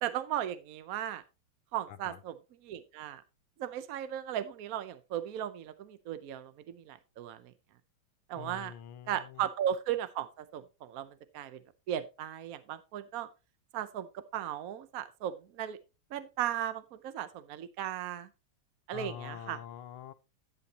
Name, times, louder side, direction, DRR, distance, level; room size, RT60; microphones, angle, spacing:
voice 1, 0.0-1.2 1.7-2.4 2.6-3.2 3.6-7.5 8.3-8.7 9.1-11.6 11.9-13.3 13.7-15.8 16.1-18.3 18.9-19.6, right 11 dB, 75° right, 0.8 m, -36 dB
voice 2, 1.9-2.2 8.4-9.4 18.9-20.1, left 10 dB, 90° left, 1.6 m, -45 dB
11.0 x 8.7 x 2.9 m
omnidirectional pair, 2.3 m